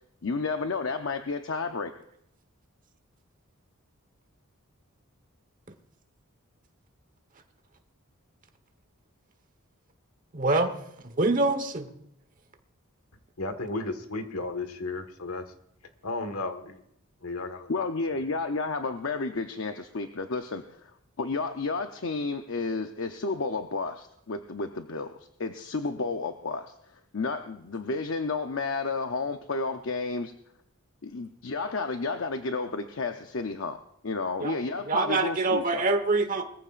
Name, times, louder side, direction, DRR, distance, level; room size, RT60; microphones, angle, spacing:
voice 1, 0.2-1.9 17.7-20.9 21.2-30.3 31.0-35.8, left 3 dB, 60° left, 7 dB, 0.7 m, -31 dB
voice 2, 10.3-10.8 11.2-11.9 34.4-34.5 34.9-36.4, right 3 dB, 35° right, 7 dB, 1.2 m, -25 dB
voice 3, 13.4-15.5 16.0-16.8 17.2-17.9, left 2 dB, 80° left, 8 dB, 1.6 m, -34 dB
21.5 x 14.5 x 2.5 m, 0.76 s
head